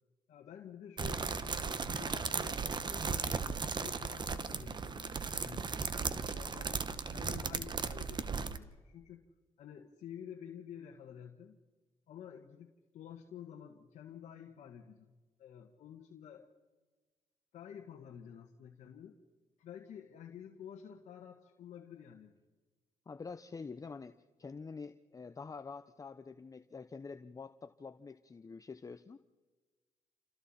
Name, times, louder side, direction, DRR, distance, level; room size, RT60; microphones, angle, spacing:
voice 1, 0.3-3.4 3.8-5.7 6.1-9.2 9.6-11.6 12.1-15.1 15.4-16.5 17.5-19.2 19.6-22.4, left 8 dB, 70° left, 2 dB, 1.4 m, -50 dB
sound 1, 1.0-8.6, right 5 dB, 35° right, 1.1 m, -36 dB
voice 2, 23.1-29.2, left 4 dB, 25° left, 11 dB, 0.7 m, -47 dB
29.0 x 27.0 x 4.3 m, 1.3 s
cardioid pair, 80°, 13 cm